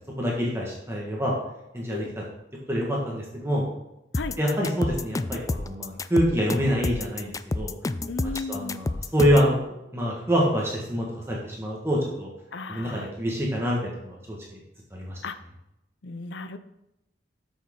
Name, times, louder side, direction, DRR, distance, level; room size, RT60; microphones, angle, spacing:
voice 1, 0.2-1.3 1.7-2.2 2.7-3.7 4.4-7.7 8.5-9.6 9.9-12.3 12.7-13.8 14.0-14.6 14.9-15.2, equal, 15° right, -3 dB, 1.6 m, -26 dB
sound 1, 4.1-9.5, left 2 dB, 20° left, 0.3 m, -29 dB
voice 2, 8.1-8.8 12.5-13.1 15.2-15.4 16.0-16.6, left 4 dB, 85° left, 11 dB, 0.6 m, -35 dB
12.5 x 6.3 x 3.7 m, 0.88 s
head